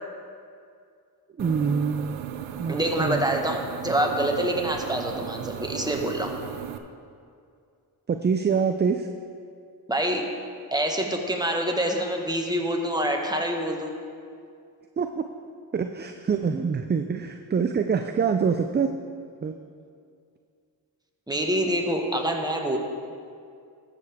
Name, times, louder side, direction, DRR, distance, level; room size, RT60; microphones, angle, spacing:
voice 1, 1.4-2.2 2.6-3.3 8.1-9.1 15.0-15.2 15.7-18.9 19.4-19.5, right 6 dB, 25° right, 7 dB, 0.4 m, -25 dB
sound 1, 1.4-6.8, right 10 dB, 85° right, 0.6 m, -36 dB
voice 2, 2.7-6.3 9.9-10.3 10.7-13.9 21.3-22.8, right 1 dB, 10° right, 2 dB, 1.5 m, -26 dB
13.5 x 6.8 x 3.6 m, 2.3 s
supercardioid pair, 45°, 45 cm